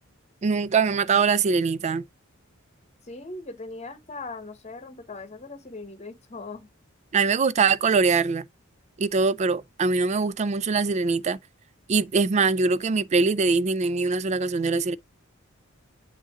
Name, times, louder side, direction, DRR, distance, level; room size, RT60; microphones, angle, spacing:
voice 1, 0.4-2.0 7.1-8.5 9.0-11.4 11.9-15.0, right 4 dB, 35° right, 0.3 m, -23 dB
voice 2, 3.0-6.7, left 3 dB, 35° left, 1.1 m, -39 dB
7.5 x 2.8 x 4.8 m
head